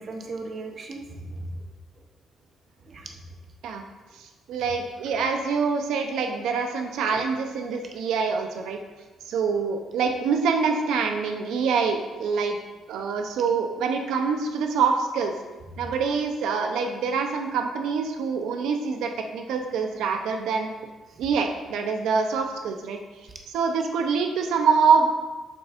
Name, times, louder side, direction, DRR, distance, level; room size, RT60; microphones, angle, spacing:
voice 1, 0.0-1.7 2.8-3.1 7.1-7.2 21.1-21.3, right 2 dB, 35° right, 3 dB, 0.7 m, -37 dB
voice 2, 4.1-8.8 9.3-12.6 12.9-15.3 15.8-20.7 21.2-23.0 23.5-25.1, right 5 dB, 80° right, 4 dB, 0.6 m, -25 dB
8.3 x 6.3 x 2.5 m, 1.2 s
cardioid pair, 165°, 0 cm